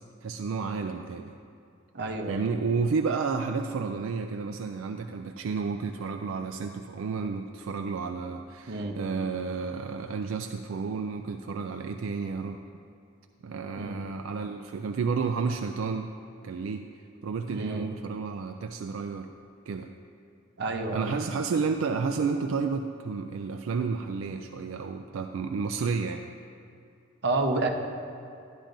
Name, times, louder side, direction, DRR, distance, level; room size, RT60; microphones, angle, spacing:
voice 1, 0.0-1.3 2.3-12.6 13.4-16.1 16.4-16.8 17.2-19.3 19.7-19.9 20.9-26.3, right 5 dB, 80° right, 5 dB, 0.3 m, -31 dB
voice 2, 1.9-2.4 8.7-9.0 13.8-14.0 17.5-17.9 20.6-21.1 27.2-27.7, right 2 dB, 55° right, 3 dB, 0.8 m, -29 dB
11.5 x 10.0 x 2.6 m, 2.5 s
head